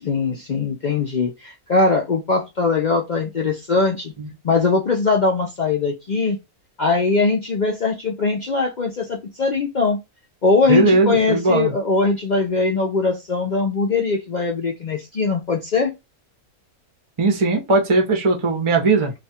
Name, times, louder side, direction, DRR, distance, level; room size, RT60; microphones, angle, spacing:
voice 1, 0.0-4.1 4.4-6.4 6.8-10.0 10.4-15.9, left 4 dB, 70° left, 0.4 m, -21 dB
voice 2, 10.7-11.7 17.2-19.1, right 3 dB, 30° right, 0.6 m, -18 dB
2.5 x 2.4 x 4.1 m
omnidirectional pair, 1.5 m